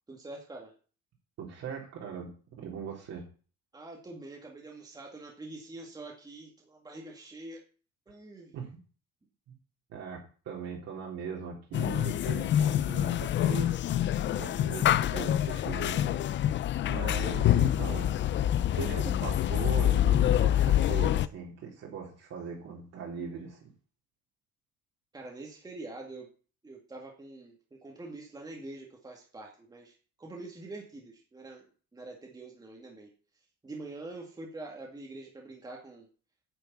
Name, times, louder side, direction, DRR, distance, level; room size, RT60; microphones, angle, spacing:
voice 1, 0.1-0.7 3.7-7.6 8.1-8.5 25.1-26.3 26.6-33.1 33.6-36.1, right 2 dB, 10° right, 0 dB, 2.3 m, -45 dB
voice 2, 1.4-2.3 2.6-3.2 8.5-8.7 9.5-9.6 9.9-13.9 14.4-18.1 18.7-23.7, right 6 dB, 55° right, -3 dB, 4.0 m, -40 dB
sound 1, 11.7-21.3, left 11 dB, 40° left, 0.5 m, -26 dB
9.7 x 7.3 x 8.8 m, 0.39 s
cardioid pair, 180°, 31 cm